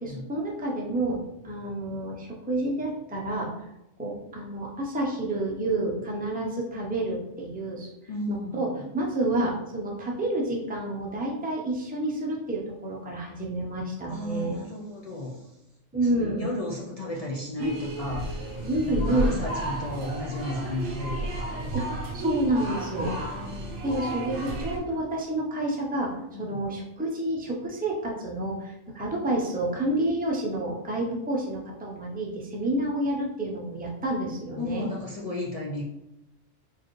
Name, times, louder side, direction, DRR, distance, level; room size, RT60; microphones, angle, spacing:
voice 1, 0.0-3.5 4.0-7.9 8.3-8.7 8.9-14.6 15.9-16.5 17.6-17.8 18.7-19.4 21.7-21.8 22.1-23.1 23.8-34.9, right 1 dB, 10° right, -2 dB, 0.4 m, -29 dB
voice 2, 8.1-8.8 14.1-15.6 16.0-18.5 18.8-21.6 22.9-23.8 26.3-26.6 34.6-35.8, left 2 dB, 60° left, -3 dB, 0.3 m, -34 dB
sound 1, 17.6-24.8, right 1 dB, 80° right, 1.1 m, -32 dB
4.5 x 2.4 x 3.0 m, 0.88 s
omnidirectional pair, 1.3 m